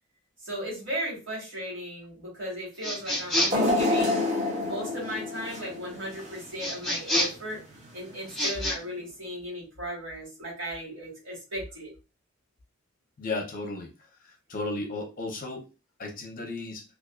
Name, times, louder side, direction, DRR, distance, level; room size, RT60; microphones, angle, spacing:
voice 1, 0.4-4.2 4.6-7.6 7.9-11.9, equal, 65° right, -3 dB, 1.4 m, -36 dB
sound 1, 2.8-3.7 6.6-7.5 8.3-8.8, left 1 dB, ahead, 0.6 m, -28 dB
sound 2, 3.5-6.6 7.1-7.2 8.2-8.3, left 2 dB, 35° right, 0.8 m, -27 dB
voice 2, 13.2-13.9 14.5-15.7 16.0-16.8, left 2 dB, 40° left, 1 dB, 0.6 m, -34 dB
2.4 x 2.3 x 2.3 m, 0.30 s
head